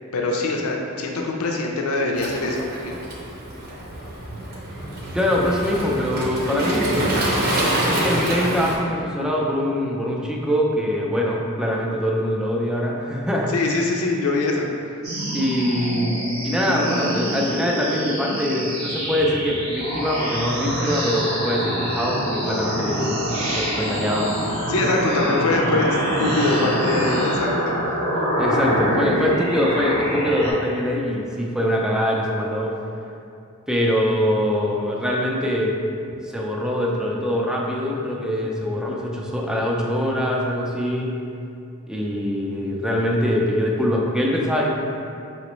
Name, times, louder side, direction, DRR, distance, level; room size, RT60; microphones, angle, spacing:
voice 1, 0.1-3.0 13.5-15.0 24.7-27.7, left 2 dB, 75° left, 0 dB, 0.5 m, -23 dB
Waves surf, 2.2-8.7, right 1 dB, 45° right, 0.7 m, -26 dB
voice 2, 5.1-6.9 7.8-13.5 15.3-16.1 16.4-23.3 23.5-24.4 28.4-32.7 33.7-35.8 36.2-41.1 41.9-44.7, equal, 5° right, -2 dB, 0.4 m, -23 dB
sound 1, 15.0-30.5, equal, 75° right, 1.0 m, -25 dB
5.0 x 3.0 x 3.0 m, 2.6 s
head